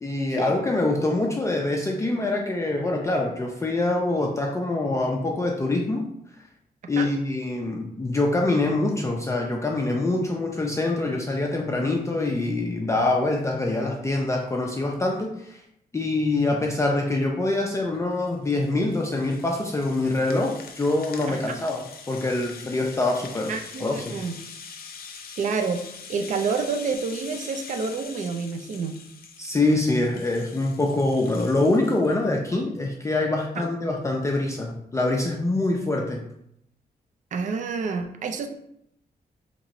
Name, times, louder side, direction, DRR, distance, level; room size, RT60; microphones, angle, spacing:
voice 1, 0.0-6.1 6.9-15.6 15.9-23.5 23.8-24.2 29.4-36.2, left 2 dB, 20° left, 0 dB, 0.3 m, -25 dB
Rattle (instrument), 17.9-32.2, left 5 dB, 70° left, 0.5 m, -44 dB
voice 2, 23.5-24.3 25.4-25.8 26.1-29.0 33.6-33.7 37.3-38.5, right 5 dB, 50° right, 6 dB, 0.4 m, -28 dB
2.9 x 2.6 x 4.1 m, 0.77 s
wide cardioid pair, 145°, 16 cm